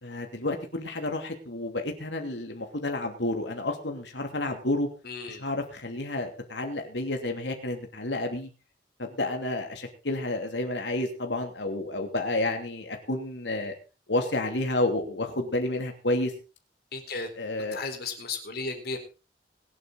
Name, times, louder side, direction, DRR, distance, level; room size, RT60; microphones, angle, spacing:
voice 1, 0.0-4.9 5.3-8.5 9.0-13.7 14.1-16.3 17.4-17.8, left 2 dB, 75° left, 4 dB, 2.9 m, -30 dB
voice 2, 5.0-5.4 16.9-17.3 17.7-19.0, left 3 dB, 60° left, 4 dB, 4.3 m, -34 dB
24.0 x 8.5 x 4.0 m, 0.34 s
head